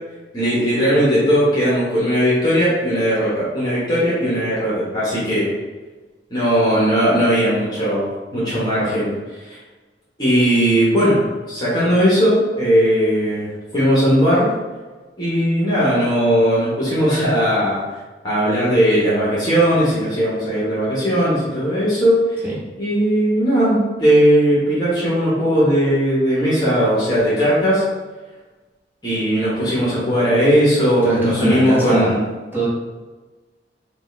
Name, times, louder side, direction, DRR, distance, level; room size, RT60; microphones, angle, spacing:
voice 1, 0.3-5.5 6.3-9.1 9.5-9.6 10.2-11.2 11.5-14.5 15.2-17.8 18.2-22.4 22.8-27.8 29.0-32.2, equal, 25° left, -8 dB, 1.3 m, -18 dB
voice 2, 31.0-32.2 32.5-32.7, right 1 dB, 10° right, -8 dB, 1.3 m, -21 dB
5.4 x 2.5 x 3.3 m, 1.2 s
head